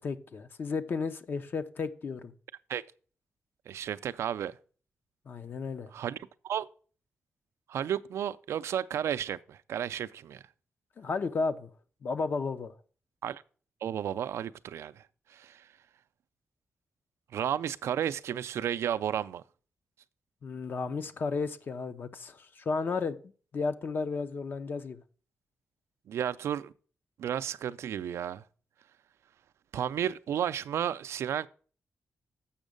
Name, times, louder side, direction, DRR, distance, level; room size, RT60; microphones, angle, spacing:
voice 1, 0.0-2.3 5.3-5.9 11.0-11.7 12.0-12.7 20.4-23.2 23.5-25.0, left 4 dB, 50° left, 0.7 m, -33 dB
voice 2, 3.7-4.6 5.9-6.7 7.7-10.4 13.2-13.4 13.8-15.0 15.3-15.7 17.3-19.4 26.1-26.7 27.2-28.4 29.7-31.5, right 9 dB, 85° right, 0.4 m, -33 dB
7.2 x 6.3 x 5.1 m
wide cardioid pair, 130°, 5 cm